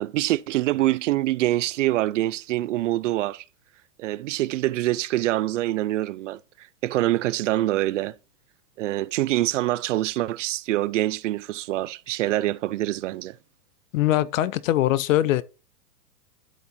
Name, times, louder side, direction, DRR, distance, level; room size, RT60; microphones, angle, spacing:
voice 1, 0.0-3.4 4.0-8.1 8.8-13.4, right 16 dB, 55° right, 0.5 m, -25 dB
voice 2, 13.9-15.4, left 14 dB, 60° left, 0.7 m, -22 dB
12.5 x 4.3 x 4.2 m
hypercardioid pair, 130°, 46 cm